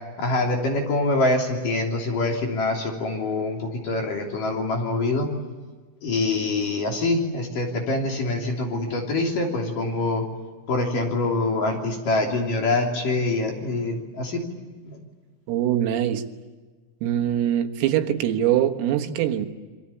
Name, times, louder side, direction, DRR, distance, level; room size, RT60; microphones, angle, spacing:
voice 1, 0.2-5.3 6.0-10.2 10.7-14.4 14.9-15.0, left 2 dB, 45° left, 1 dB, 4.3 m, -25 dB
voice 2, 15.5-16.2 17.0-19.5, right 11 dB, 90° right, 4 dB, 4.2 m, -23 dB
27.5 x 24.0 x 8.5 m, 1.4 s
omnidirectional pair, 5.9 m